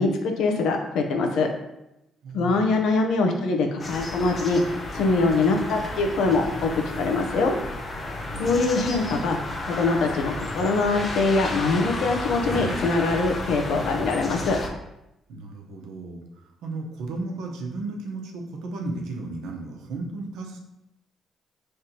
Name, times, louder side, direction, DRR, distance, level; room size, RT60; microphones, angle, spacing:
voice 1, 0.0-1.5 2.3-4.6 4.9-6.7 7.0-7.6 8.4-9.4 9.7-14.6, left 3 dB, 80° left, 3 dB, 0.8 m, -23 dB
voice 2, 2.2-2.9 8.3-8.9 15.3-20.6, right 2 dB, 85° right, 1 dB, 0.9 m, -35 dB
sound 1, 3.8-14.7, left 2 dB, 40° left, 0.8 m, -32 dB
5.2 x 3.3 x 2.9 m, 0.89 s
cardioid pair, 90°, 0 cm